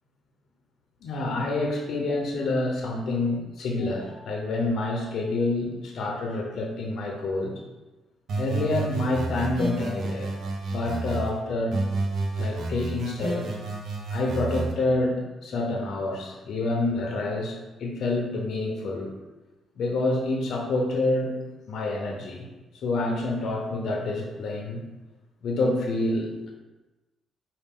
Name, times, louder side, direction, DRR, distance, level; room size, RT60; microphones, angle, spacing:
voice 1, 1.0-7.5 8.4-10.3 10.7-11.8 12.4-13.6 14.1-19.1 19.8-21.3 21.7-22.5 22.7-24.8 25.4-26.5, left 2 dB, 65° left, 1 dB, 0.7 m, -27 dB
sound 1, 8.3-11.3 11.7-14.7, right 2 dB, 65° right, 0.7 m, -30 dB
4.9 x 2.5 x 3.6 m, 1.1 s
cardioid pair, 90°, 0 cm